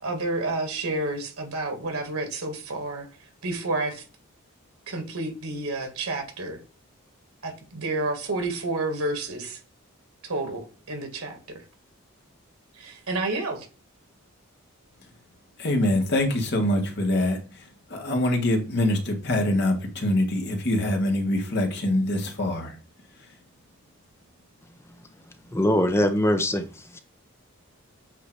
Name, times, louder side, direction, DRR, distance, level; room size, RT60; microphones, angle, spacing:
voice 1, 0.0-3.1 3.4-4.0 4.9-6.6 7.4-9.6 10.2-11.6 12.8-13.7, right 2 dB, 90° right, 2.1 m, -30 dB
voice 2, 15.6-22.7, left 1 dB, 50° left, 1.5 m, -24 dB
voice 3, 25.5-27.0, left 1 dB, 10° left, 0.6 m, -23 dB
8.2 x 2.8 x 4.6 m
head